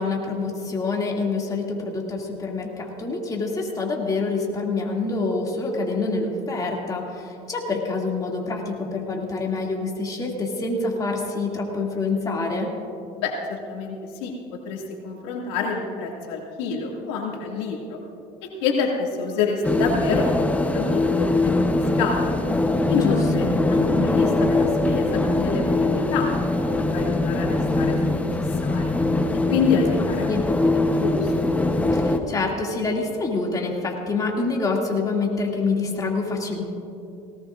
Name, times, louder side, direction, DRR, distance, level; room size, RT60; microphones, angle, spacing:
voice 1, 0.0-12.7 22.9-23.2 30.3-30.4 31.9-36.6, left 3 dB, 25° left, -1 dB, 2.5 m, -26 dB
voice 2, 13.2-18.0 18.4-21.6 22.0-22.4 22.9-26.3 26.7-28.3 28.6-29.0 29.5-30.3 30.7-31.3, left 5 dB, 85° left, -1 dB, 2.3 m, -27 dB
sound 1, 19.6-32.2, left 2 dB, 10° left, 1.0 m, -22 dB
19.0 x 18.5 x 2.6 m, 2.7 s
supercardioid pair, 105°, 14 cm